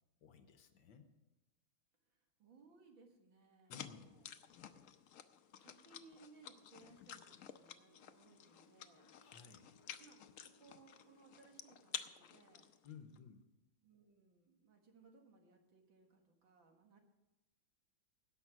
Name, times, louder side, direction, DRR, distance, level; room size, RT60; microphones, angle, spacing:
voice 1, 0.2-1.1 3.7-4.1 9.2-9.7 12.8-13.4, left 6 dB, 70° left, 8 dB, 1.6 m, -56 dB
voice 2, 2.1-4.3 5.5-9.1 10.0-12.7 13.8-17.0, right 4 dB, 70° right, 3 dB, 2.5 m, -65 dB
sound 1, 3.7-13.2, left 9 dB, 90° left, 0.7 m, -53 dB
Wind instrument woodwind instrument, 7.9-12.0, left 1 dB, 15° right, 3.6 m, -72 dB
17.0 x 6.4 x 6.0 m, 0.99 s
omnidirectional pair, 2.2 m